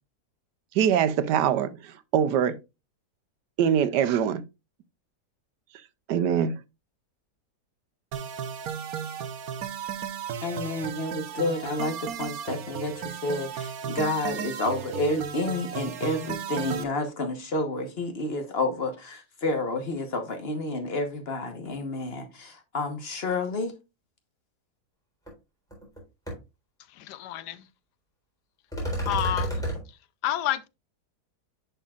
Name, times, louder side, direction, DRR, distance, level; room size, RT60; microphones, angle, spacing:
voice 1, 0.7-2.5 3.6-4.4 6.1-6.5, right 8 dB, 85° right, 1.3 m, -23 dB
sound 1, 8.1-16.8, right 8 dB, 65° right, 1.2 m, -35 dB
voice 2, 10.4-23.7, left 2 dB, 40° left, 1.3 m, -30 dB
sound 2, 25.3-25.4 25.7-26.0 26.3-26.4 28.7-29.8, right 1 dB, ahead, 3.7 m, -29 dB
voice 3, 27.0-27.6 29.1-29.6 30.2-30.7, left 13 dB, 80° left, 1.2 m, -29 dB
10.5 x 5.6 x 2.4 m
omnidirectional pair, 1.8 m